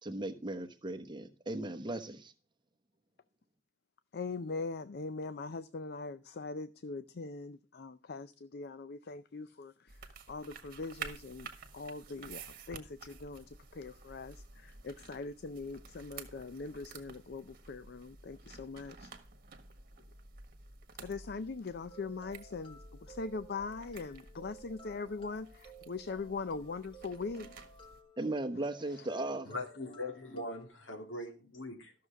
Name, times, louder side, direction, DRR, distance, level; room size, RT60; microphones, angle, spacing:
voice 1, 0.0-2.3 28.2-29.5, right 2 dB, 25° right, 1.0 m, -37 dB
voice 2, 4.1-19.1 21.0-27.5, left 4 dB, 55° left, 0.5 m, -41 dB
sound 1, 9.9-28.0, right 5 dB, 50° right, 1.5 m, -51 dB
sound 2, 21.9-30.7, right 3 dB, 30° left, 1.8 m, -56 dB
voice 3, 29.4-31.9, left 2 dB, 85° left, 2.5 m, -41 dB
13.5 x 6.7 x 4.9 m
head